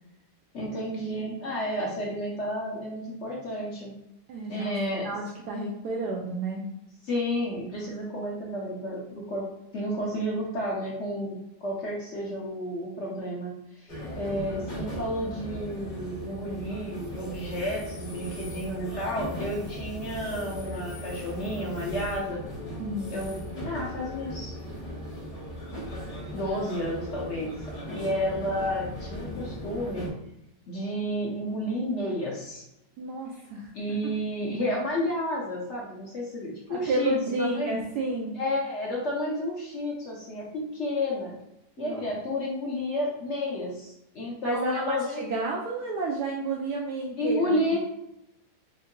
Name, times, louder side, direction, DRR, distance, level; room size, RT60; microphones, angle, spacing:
voice 1, 0.5-3.9 4.5-5.1 7.0-9.4 9.7-11.4 11.6-22.4 23.1-23.4 23.6-24.5 26.3-27.5 27.9-30.1 30.7-32.6 33.7-37.1 37.4-37.7 38.3-41.3 41.8-45.3 47.2-47.8, equal, 55° left, -3 dB, 0.8 m, -31 dB
voice 2, 4.3-4.8 5.0-6.6 22.8-23.2 33.0-34.0 36.7-38.4 41.8-42.1 44.4-47.8, right 2 dB, 75° right, -1 dB, 1.1 m, -31 dB
sound 1, 13.9-30.1, equal, 40° left, 1.7 m, -38 dB
4.5 x 2.6 x 2.2 m, 0.84 s
omnidirectional pair, 1.9 m